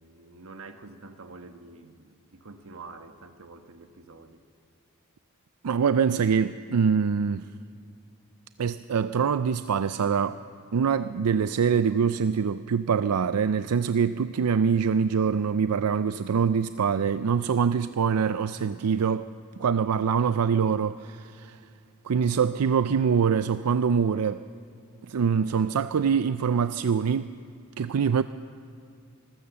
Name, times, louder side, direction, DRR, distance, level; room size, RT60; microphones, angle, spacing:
voice 1, 0.0-4.4, right 3 dB, 65° right, 1.3 m, -47 dB
voice 2, 5.6-7.5 8.6-10.4 10.7-19.3 19.6-21.6 22.0-24.4 25.0-27.4 27.8-28.2, right 6 dB, 90° right, 0.5 m, -24 dB
25.5 x 15.5 x 7.0 m
head